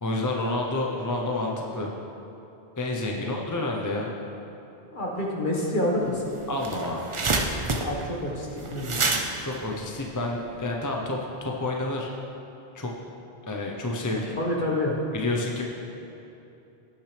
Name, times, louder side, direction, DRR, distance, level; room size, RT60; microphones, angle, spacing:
voice 1, 0.0-1.9 2.8-4.1 6.5-7.2 9.4-12.1 12.7-12.9 13.5-14.4 15.1-15.6, left 2 dB, 20° left, -1 dB, 0.7 m, -29 dB
voice 2, 4.9-6.3 7.8-9.0 14.3-15.0, left 1 dB, 50° left, -3 dB, 1.7 m, -28 dB
sound 1, 6.1-6.2 6.4-10.7, right 3 dB, 35° right, 0.6 m, -28 dB
18.5 x 6.1 x 3.4 m, 2.9 s
omnidirectional pair, 1.1 m